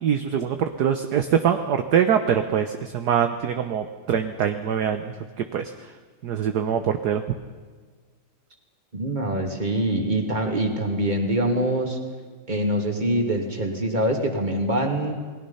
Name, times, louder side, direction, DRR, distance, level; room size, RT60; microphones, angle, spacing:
voice 1, 0.0-5.7 6.2-7.2, right 8 dB, 55° right, 7 dB, 1.3 m, -23 dB
voice 2, 8.9-12.0 12.5-15.1, right 1 dB, 20° right, 2 dB, 2.7 m, -24 dB
29.0 x 20.5 x 5.7 m, 1.5 s
omnidirectional pair, 2.4 m